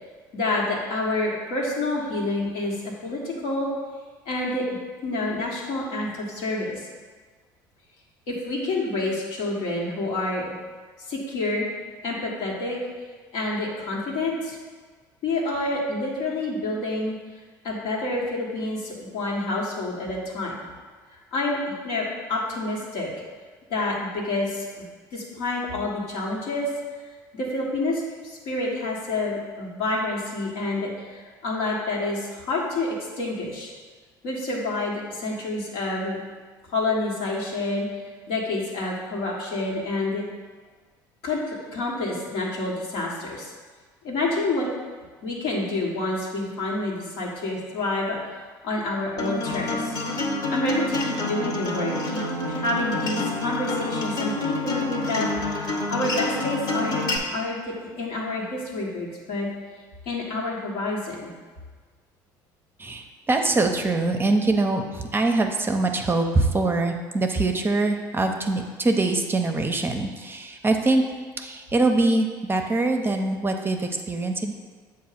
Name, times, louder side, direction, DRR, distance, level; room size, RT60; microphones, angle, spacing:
voice 1, 0.3-3.7 4.2-4.7 5.0-6.9 8.3-10.5 11.1-11.7 12.0-12.8 13.3-14.6 15.2-17.2 17.6-20.5 21.3-23.1 23.7-24.9 25.1-26.7 27.3-33.7 34.2-36.2 36.7-40.3 41.2-43.5 44.0-44.7 45.2-48.2 48.6-49.9 50.5-59.5 60.0-61.3, left 2 dB, 70° left, -3 dB, 1.5 m, -28 dB
Acoustic guitar, 49.2-57.2, left 2 dB, 45° left, 1.2 m, -28 dB
voice 2, 62.8-71.0 71.4-74.5, right 2 dB, 20° right, 4 dB, 0.7 m, -23 dB
7.2 x 2.5 x 5.7 m, 1.5 s
hypercardioid pair, 70°, 10 cm